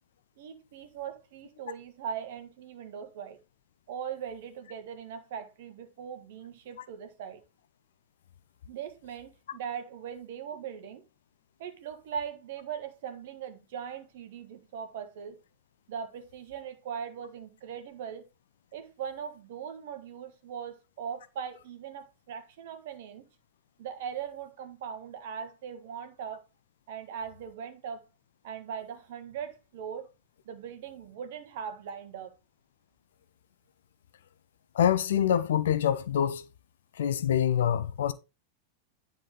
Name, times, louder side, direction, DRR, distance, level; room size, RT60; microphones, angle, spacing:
voice 1, 0.4-3.4 3.9-7.4 8.7-11.0 11.6-15.4 15.9-18.2 18.7-23.2 23.8-26.4 26.9-28.0 28.4-30.1 30.4-32.3, right 7 dB, 55° right, 1.5 m, -40 dB
voice 2, 34.7-36.4 37.0-38.1, left 9 dB, 60° left, 0.6 m, -25 dB
9.9 x 4.3 x 3.8 m
figure-of-eight pair, 90°, 0 cm